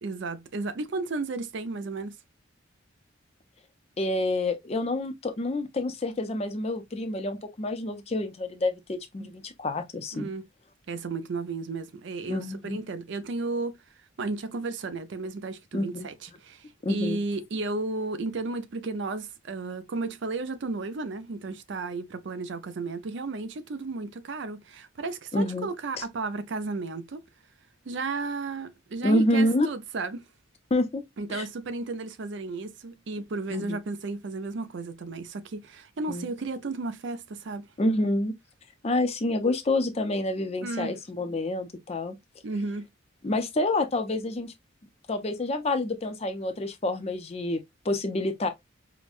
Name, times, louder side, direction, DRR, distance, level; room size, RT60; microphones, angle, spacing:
voice 1, 0.0-2.2 9.2-9.3 10.1-10.5 10.9-13.8 14.2-27.2 27.9-30.2 31.2-37.7 40.6-41.0 42.4-42.9, right 3 dB, 60° right, 0.5 m, -33 dB
voice 2, 4.0-10.3 12.3-12.8 15.7-16.1 16.8-17.2 25.3-25.7 26.0-26.1 29.0-29.7 30.7-31.0 31.3-31.4 33.5-33.8 36.1-36.3 37.8-38.3 38.8-42.2 43.2-44.5 45.1-48.5, left 1 dB, 30° left, 0.5 m, -28 dB
4.9 x 2.1 x 2.4 m
head